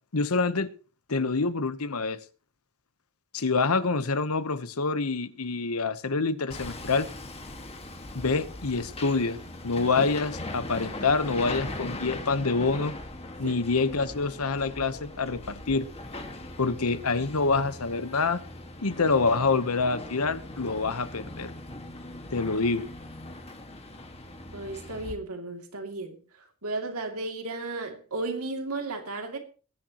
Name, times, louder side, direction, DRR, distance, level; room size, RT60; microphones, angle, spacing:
voice 1, 0.1-0.7 1.1-2.2 3.3-7.1 8.1-9.4 9.6-12.9 13.4-15.9 16.6-18.4 18.8-21.5 22.3-22.9, left 4 dB, 75° left, 1.0 m, -26 dB
Hammer, 6.5-25.1, left 2 dB, 30° left, 1.8 m, -40 dB
voice 2, 24.5-26.2 26.6-29.4, right 2 dB, 80° right, 2.7 m, -34 dB
21.5 x 10.5 x 3.0 m
head